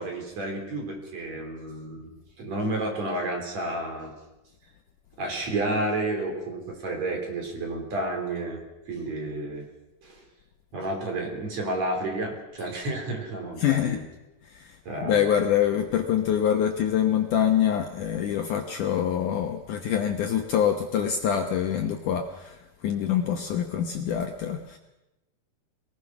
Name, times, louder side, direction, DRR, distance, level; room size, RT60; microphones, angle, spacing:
voice 1, 0.0-2.1 2.4-4.1 5.2-9.7 10.0-10.2 10.7-14.0 14.9-15.3, right 2 dB, 45° right, 2 dB, 4.4 m, -31 dB
voice 2, 13.6-14.0 14.4-14.8 15.0-24.8, left 9 dB, 70° left, 4 dB, 2.1 m, -25 dB
23.5 x 19.0 x 6.0 m, 0.97 s
omnidirectional pair, 4.6 m